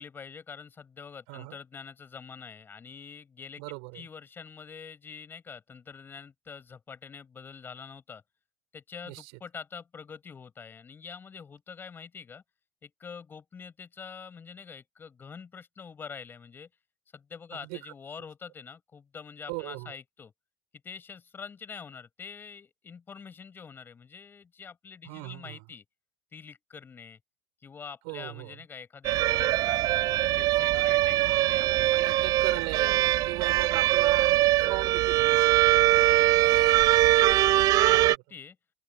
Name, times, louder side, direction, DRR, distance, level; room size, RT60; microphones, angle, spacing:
voice 1, 0.0-3.6 3.9-8.2 8.7-12.4 12.8-16.7 17.1-20.3 20.8-25.8 26.3-27.2 27.6-32.4 35.9-38.6, left 6 dB, 20° left, 7.8 m, -45 dB
voice 2, 1.3-1.6 3.6-4.1 9.0-9.3 17.6-17.8 19.5-19.9 25.0-25.6 28.0-28.6 32.0-36.0 37.9-38.1, right 32 dB, 65° right, 6.3 m, -38 dB
sound 1, 29.0-38.2, right 15 dB, 35° right, 0.3 m, -22 dB
open air
cardioid pair, 165°, 11 cm